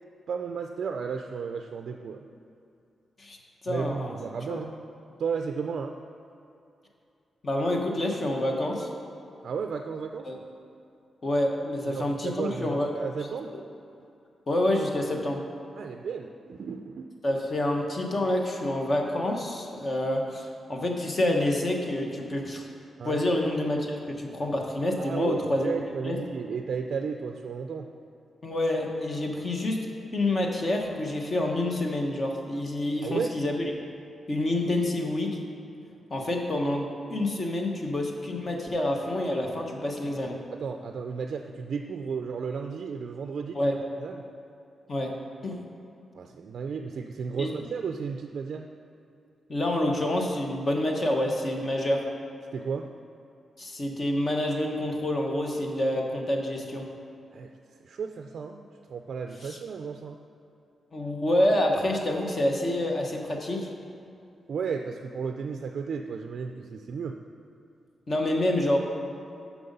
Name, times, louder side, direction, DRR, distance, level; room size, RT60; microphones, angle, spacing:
voice 1, 0.3-2.3 3.7-4.7 5.2-6.0 9.4-10.3 11.9-13.6 15.7-17.1 23.0-23.2 25.0-27.9 33.0-33.4 40.6-43.6 44.0-44.2 46.1-48.7 52.5-52.9 57.3-57.5 57.8-60.2 64.5-67.2, right 6 dB, 55° right, 5 dB, 0.3 m, -34 dB
voice 2, 3.6-4.1 4.5-4.6 7.4-8.9 10.3-10.4 11.2-12.9 13.5-13.6 14.5-15.4 17.2-22.7 23.0-25.7 26.0-26.2 28.4-29.8 30.1-33.7 34.3-35.4 36.1-40.3 43.5-43.8 44.9-45.1 45.4-45.6 47.4-47.5 49.5-52.1 53.6-56.9 59.4-59.6 60.9-63.7 68.1-68.8, left 1 dB, 30° left, 2 dB, 0.8 m, -27 dB
7.7 x 6.1 x 5.3 m, 2.6 s
wide cardioid pair, 160°, 0 cm